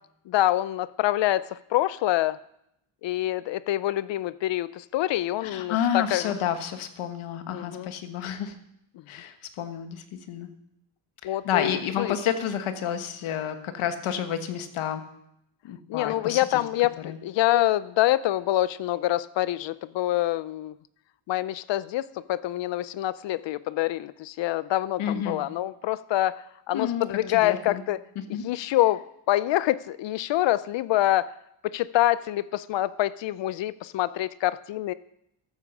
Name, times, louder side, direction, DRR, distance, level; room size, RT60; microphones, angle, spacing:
voice 1, 0.3-2.4 3.0-6.3 7.5-7.9 11.2-12.1 15.9-20.7 21.3-28.0 28.4-31.3 31.6-34.9, left 14 dB, 65° left, 17 dB, 0.5 m, -26 dB
voice 2, 5.4-8.6 9.1-10.5 11.2-15.0 15.6-16.4 17.0-17.2 25.0-25.4 26.7-27.1 27.3-27.8 28.3-28.4, left 9 dB, 80° left, 8 dB, 1.4 m, -30 dB
13.5 x 8.4 x 6.1 m, 0.79 s
cardioid pair, 130°, 49 cm